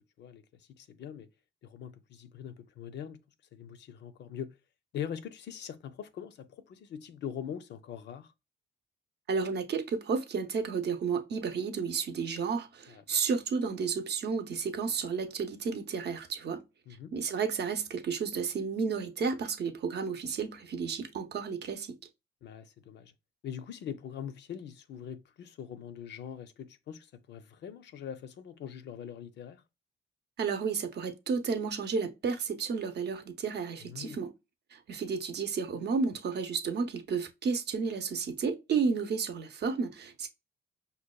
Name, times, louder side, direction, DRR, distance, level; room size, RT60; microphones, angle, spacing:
voice 1, 0.2-1.3 1.6-3.2 3.5-4.6 4.9-8.3 12.9-13.2 16.9-17.1 22.4-23.1 23.4-29.6 33.8-34.2, left 8 dB, 60° left, 0.5 m, -42 dB
voice 2, 9.3-16.6 17.1-22.0 30.4-34.3 34.7-40.3, right 5 dB, 55° right, 0.7 m, -32 dB
5.3 x 2.2 x 2.2 m
cardioid pair, 90°, 20 cm